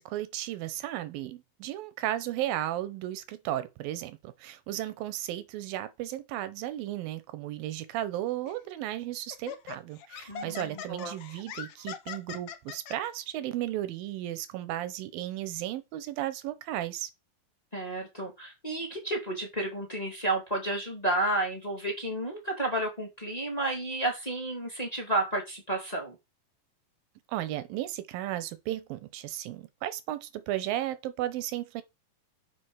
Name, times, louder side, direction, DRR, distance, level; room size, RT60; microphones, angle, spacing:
voice 1, 0.0-17.1 27.3-31.8, right 13 dB, 90° right, 2.7 m, -34 dB
Laughter, 8.5-8.7 9.3-13.0, left 8 dB, 85° left, 1.3 m, -41 dB
voice 2, 10.3-11.1 17.7-26.1, right 2 dB, 15° left, 2.2 m, -31 dB
7.6 x 4.7 x 6.3 m
omnidirectional pair, 4.1 m